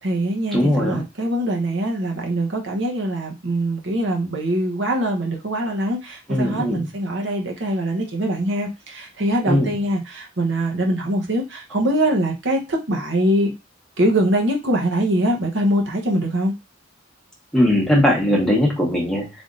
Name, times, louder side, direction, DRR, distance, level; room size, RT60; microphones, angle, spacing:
voice 1, 0.0-13.5 14.0-16.5, right 1 dB, 65° right, 1 dB, 0.9 m, -23 dB
voice 2, 0.5-1.0 6.3-6.9 9.5-9.7 17.5-19.3, left 1 dB, ahead, -2 dB, 1.1 m, -19 dB
3.5 x 2.6 x 3.7 m, 0.25 s
head